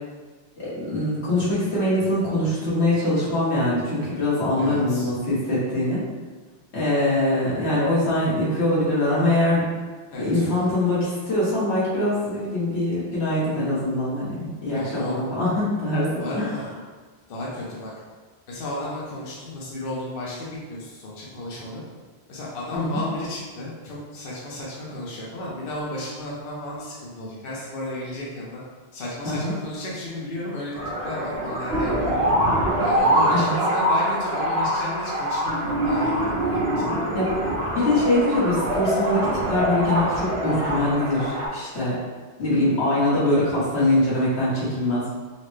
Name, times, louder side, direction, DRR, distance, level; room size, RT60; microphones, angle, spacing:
voice 1, 0.6-6.0 6.7-9.7 10.2-16.5 22.7-23.0 29.2-29.5 33.3-33.5 37.1-42.0 42.4-45.1, left 1 dB, 90° left, -9 dB, 1.5 m, -23 dB
voice 2, 4.6-5.1 10.1-10.7 14.7-15.1 16.2-16.7 17.3-17.9 18.5-21.8 22.3-28.6 28.9-30.7 31.0-32.3 32.8-36.6, left 1 dB, 65° left, -5 dB, 0.8 m, -33 dB
sound 1, 30.7-41.5, right 1 dB, 80° right, 1.1 m, -24 dB
4.1 x 2.0 x 3.1 m, 1.4 s
omnidirectional pair, 1.1 m